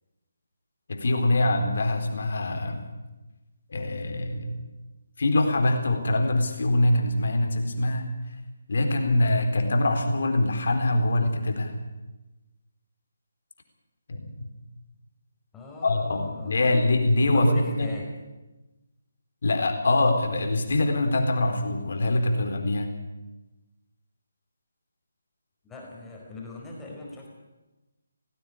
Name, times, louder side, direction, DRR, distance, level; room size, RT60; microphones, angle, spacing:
voice 1, 0.9-2.9 3.7-4.6 5.2-8.1 8.7-11.8 14.1-14.5 15.8-17.9 19.4-22.9, left 2 dB, 60° left, 4 dB, 4.0 m, -24 dB
voice 2, 15.5-16.6 17.3-18.1 25.6-27.3, left 2 dB, 10° left, -2 dB, 4.6 m, -39 dB
19.0 x 15.5 x 9.7 m, 1.1 s
figure-of-eight pair, 150°, 0 cm